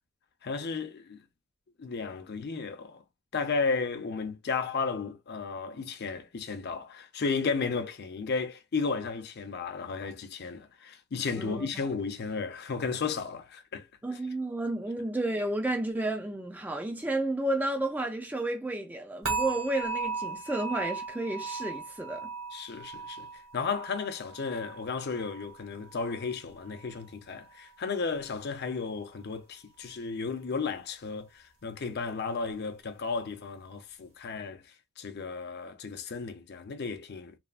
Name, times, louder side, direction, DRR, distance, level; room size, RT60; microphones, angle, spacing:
voice 1, 0.4-1.2 1.8-3.0 3.3-13.9 22.5-37.4, left 4 dB, 50° left, 0.6 m, -34 dB
voice 2, 11.4-11.8 14.0-22.3, right 1 dB, 10° right, 0.3 m, -32 dB
sound 1, 19.2-26.3 26.6-27.0 27.5-27.6, right 4 dB, 75° right, 1.4 m, -37 dB
3.3 x 2.0 x 2.4 m
head